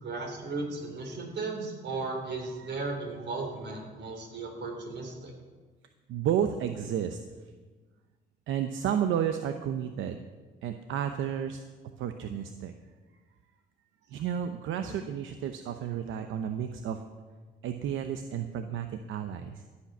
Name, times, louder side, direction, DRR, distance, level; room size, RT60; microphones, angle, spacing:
voice 1, 0.0-5.3 14.8-15.0, right 3 dB, 60° right, 2 dB, 3.5 m, -36 dB
voice 2, 6.1-7.2 8.5-10.2 10.6-11.6 12.0-12.7 14.1-17.0 17.6-19.6, right 9 dB, 80° right, 8 dB, 0.8 m, -32 dB
14.5 x 8.6 x 6.1 m, 1.4 s
cardioid pair, 90°, 20 cm